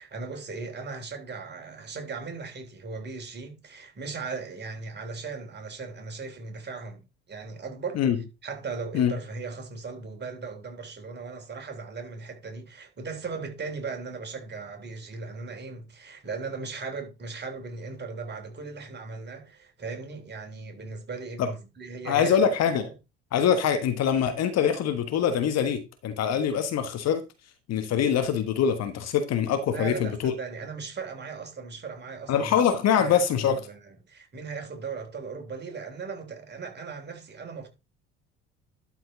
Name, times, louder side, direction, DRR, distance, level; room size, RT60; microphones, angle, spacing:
voice 1, 0.0-7.0 7.3-8.0 8.4-22.4 22.8-22.9 29.7-32.6 33.0-37.7, right 4 dB, 30° right, 3.3 m, -38 dB
voice 2, 22.1-22.9 23.3-27.2 27.7-30.3 32.3-33.6, left 8 dB, 50° left, 1.4 m, -24 dB
12.0 x 4.6 x 3.9 m
hypercardioid pair, 60°, 33 cm